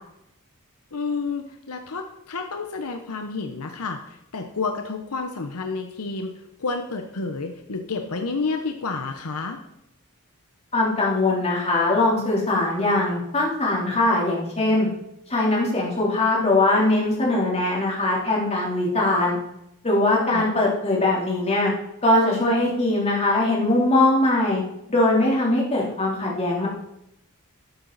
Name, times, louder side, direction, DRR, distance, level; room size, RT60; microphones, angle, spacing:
voice 1, 0.9-9.6 20.3-20.6, left 4 dB, 75° left, 5 dB, 0.9 m, -30 dB
voice 2, 10.7-14.9 15.3-19.4 19.8-21.7 22.0-24.6 24.9-26.7, left 2 dB, 30° left, -3 dB, 3.3 m, -21 dB
12.0 x 8.9 x 4.0 m, 0.83 s
head